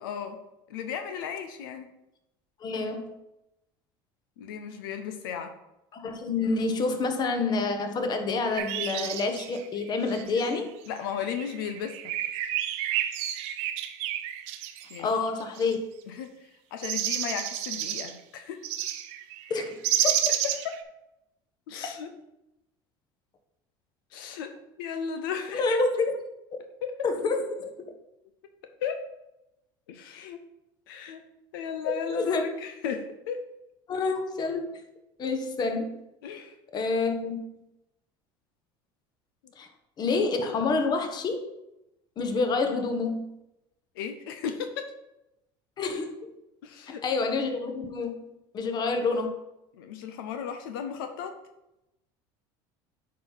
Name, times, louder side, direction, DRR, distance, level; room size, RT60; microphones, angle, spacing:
voice 1, 0.0-0.4 0.7-1.9 4.4-5.5 10.9-12.1 14.9-15.1 16.1-18.6 20.6-20.9 21.7-22.1 24.1-25.8 26.8-27.1 28.8-29.0 29.9-30.4 30.9-31.2 31.5-33.5 36.2-36.6 44.0-44.9 46.6-47.0 49.8-51.4, left 7 dB, 90° left, 7 dB, 0.7 m, -35 dB
voice 2, 2.6-3.1 5.9-10.7 15.0-15.8 19.5-19.8 25.5-26.1 27.0-27.7 31.8-32.4 33.9-34.7 35.2-35.9 36.7-37.4 39.6-39.7 40.0-41.5 42.2-43.4 45.8-46.2 47.0-48.3 48.5-49.4, left 3 dB, 40° left, 6 dB, 1.2 m, -28 dB
sound 1, 8.6-10.6 11.1-15.7 16.8-18.1 18.6-20.8, right 12 dB, 70° right, 0.7 m, -31 dB
9.3 x 4.6 x 4.1 m, 0.90 s
supercardioid pair, 110°, 11 cm